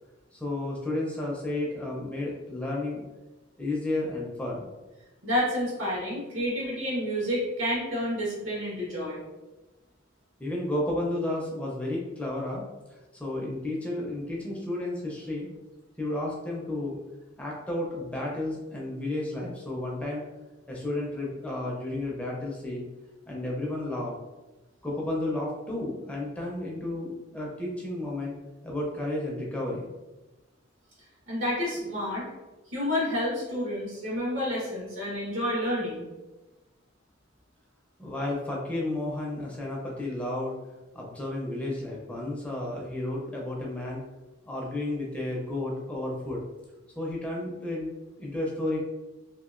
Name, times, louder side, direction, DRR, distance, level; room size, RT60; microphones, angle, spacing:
voice 1, 0.3-3.0 3.6-4.7 10.4-12.7 13.1-15.5 16.0-17.0 17.4-20.2 20.7-22.9 23.3-24.1 24.8-28.3 28.6-29.9 38.0-40.5 40.9-44.0 44.4-46.4 47.0-48.8, left 1 dB, 5° left, -3 dB, 0.4 m, -32 dB
voice 2, 5.2-9.2 31.3-32.2 32.7-36.1, equal, 90° right, -5 dB, 1.2 m, -29 dB
2.8 x 2.3 x 2.4 m, 1.1 s
head